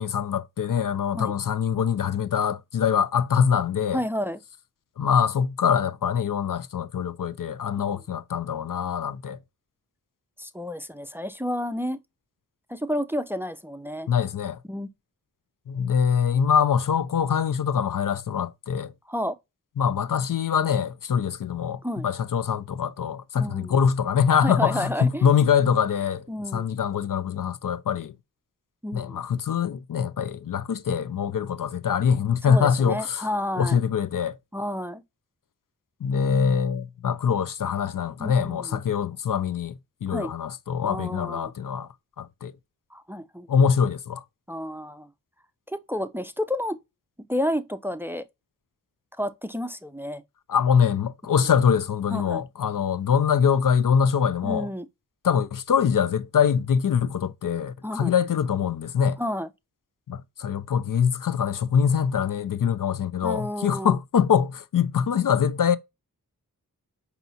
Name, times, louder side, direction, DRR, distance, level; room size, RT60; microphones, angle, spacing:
voice 1, 0.0-4.0 5.0-9.4 14.1-14.6 15.7-18.9 19.8-26.3 26.5-28.1 28.9-33.3 33.6-34.3 36.0-41.9 42.2-42.6 43.5-44.2 50.5-54.7 55.2-59.2 60.1-65.8, left 7 dB, 60° left, 0.5 m, -24 dB
voice 2, 3.9-4.4 7.8-7.9 10.4-12.0 12.7-14.1 14.7-14.9 19.1-19.4 21.8-22.1 23.4-23.8 24.4-25.3 26.3-26.7 28.8-29.2 32.4-33.8 34.5-35.0 38.2-38.8 40.1-40.3 40.8-41.5 42.9-43.5 44.5-45.1 45.7-46.8 47.3-48.2 49.2-50.2 52.1-52.4 54.4-54.9 57.8-58.1 59.2-59.5 63.2-64.0, equal, 5° right, 0.5 m, -30 dB
5.3 x 2.8 x 2.7 m
cardioid pair, 45°, 36 cm